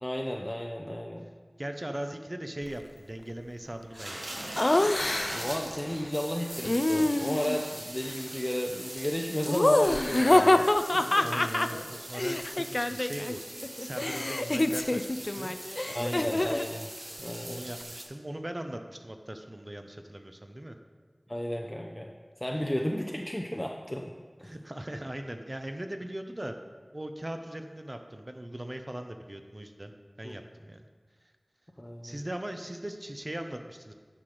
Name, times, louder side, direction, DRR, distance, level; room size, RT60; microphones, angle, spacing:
voice 1, 0.0-1.3 5.3-11.0 15.9-16.9 17.2-17.6 21.3-22.1 22.4-24.1 24.4-24.5 30.2-30.4 31.8-32.2, equal, 20° left, 1 dB, 0.6 m, -33 dB
voice 2, 1.6-4.5 11.2-13.4 13.8-15.1 15.4-15.5 15.9-16.4 17.5-20.8 24.4-26.6 26.9-30.9 32.0-33.9, right 1 dB, 35° right, 6 dB, 0.8 m, -39 dB
sound 1, 3.9-18.0, right 1 dB, 80° right, 1.5 m, -41 dB
Laughter, 4.6-5.6 6.6-7.7 9.5-13.3 13.6-16.7, left 1 dB, 50° left, 0.3 m, -26 dB
10.5 x 6.0 x 5.0 m, 1.5 s
wide cardioid pair, 45°, 0 cm